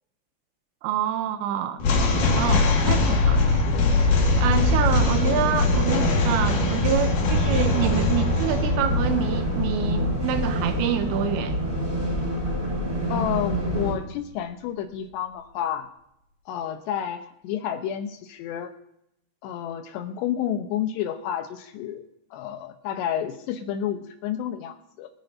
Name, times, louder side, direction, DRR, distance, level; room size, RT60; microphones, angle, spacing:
voice 1, 0.8-3.6 4.4-11.6, right 8 dB, 80° right, 9 dB, 2.8 m, -27 dB
sound 1, 1.8-13.1, left 3 dB, 55° left, 2.8 m, -23 dB
sound 2, 4.0-13.9, equal, 10° right, 3.3 m, -28 dB
voice 2, 13.1-15.9 16.5-18.7 19.4-22.0 22.3-25.1, left 10 dB, 80° left, 8 dB, 2.7 m, -30 dB
27.5 x 9.4 x 2.6 m, 0.79 s
omnidirectional pair, 5.4 m